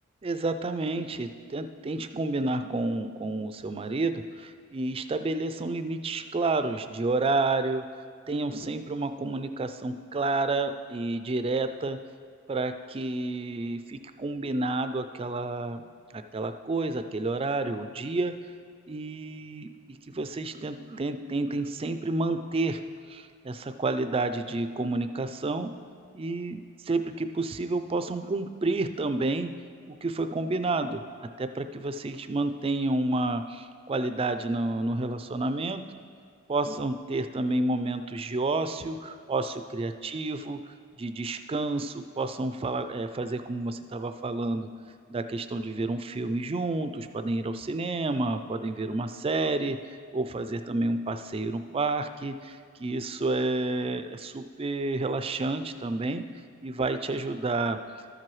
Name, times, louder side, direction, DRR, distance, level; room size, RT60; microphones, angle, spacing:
voice 1, 0.2-7.8 8.3-12.0 12.5-15.8 16.1-18.3 18.9-22.8 23.1-25.7 26.1-29.5 29.9-35.8 36.5-40.6 41.0-44.7 45.1-49.8 50.1-56.2 56.6-57.8, right 2 dB, 25° right, 9 dB, 0.4 m, -30 dB
13.0 x 7.5 x 3.1 m, 2.2 s
head